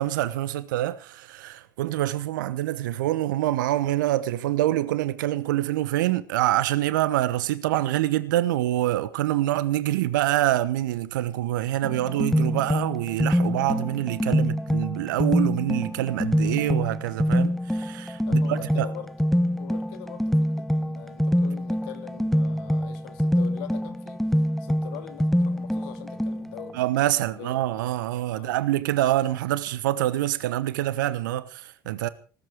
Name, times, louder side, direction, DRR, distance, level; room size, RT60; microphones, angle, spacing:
voice 1, 0.0-18.9 26.7-32.1, right 14 dB, 70° right, 1.1 m, -26 dB
sound 1, 11.8-26.7, equal, ahead, 1.0 m, -25 dB
voice 2, 18.2-26.8 27.2-27.6 28.3-28.5 31.8-32.1, left 11 dB, 60° left, 2.5 m, -43 dB
17.5 x 13.5 x 4.9 m
figure-of-eight pair, 60°, 11 cm